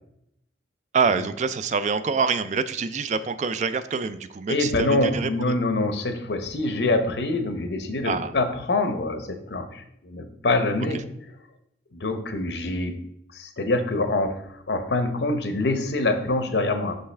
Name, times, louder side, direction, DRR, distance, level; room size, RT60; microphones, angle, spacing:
voice 1, 0.9-5.6 8.0-8.3, right 5 dB, 40° right, 13 dB, 0.3 m, -26 dB
voice 2, 4.5-11.0 11.9-13.0 13.3-14.4 14.7-17.0, left 2 dB, 70° left, 7 dB, 0.7 m, -25 dB
5.8 x 5.4 x 3.3 m, 0.77 s
head